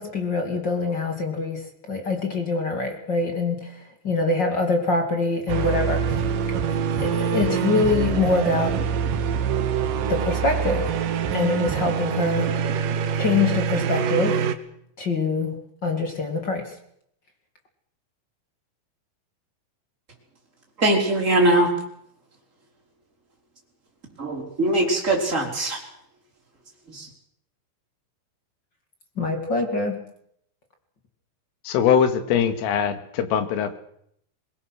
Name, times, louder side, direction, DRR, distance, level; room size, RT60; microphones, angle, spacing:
voice 1, 0.0-1.6 1.9-6.3 7.0-8.8 10.1-10.9 11.3-12.5 13.1-14.4 15.0-15.6 15.8-16.7 29.2-30.0, left 3 dB, 35° left, 4 dB, 1.7 m, -24 dB
sound 1, 5.5-14.6, right 7 dB, 80° right, 1.9 m, -25 dB
voice 2, 20.8-21.7 24.2-25.8 26.9-27.0, right 1 dB, 15° right, 0 dB, 4.8 m, -21 dB
voice 3, 31.7-33.8, left 8 dB, 75° left, 9 dB, 4.3 m, -22 dB
24.0 x 22.0 x 6.4 m, 0.70 s
omnidirectional pair, 6.0 m